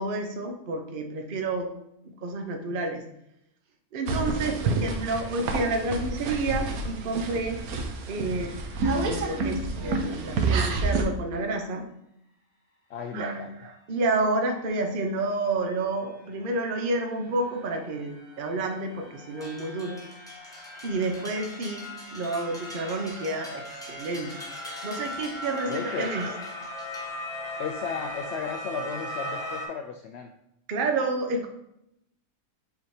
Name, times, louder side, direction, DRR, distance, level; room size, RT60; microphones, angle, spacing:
voice 1, 0.0-1.7 2.0-3.0 3.9-7.6 8.1-8.5 8.8-11.9 13.1-20.1 20.8-24.4 24.8-26.3 30.7-31.5, right 2 dB, 45° right, 4 dB, 0.8 m, -30 dB
sound 1, 4.1-11.0, right 3 dB, 75° right, 1.3 m, -29 dB
voice 2, 12.9-13.6 25.7-26.1 27.6-30.3, left 7 dB, 70° left, 4 dB, 0.6 m, -34 dB
sound 2, 15.1-15.2 15.6-29.6, left 1 dB, 40° left, 1.6 m, -39 dB
sound 3, 19.4-27.6, equal, 5° left, 0.9 m, -46 dB
7.4 x 2.8 x 4.8 m, 0.78 s
omnidirectional pair, 1.6 m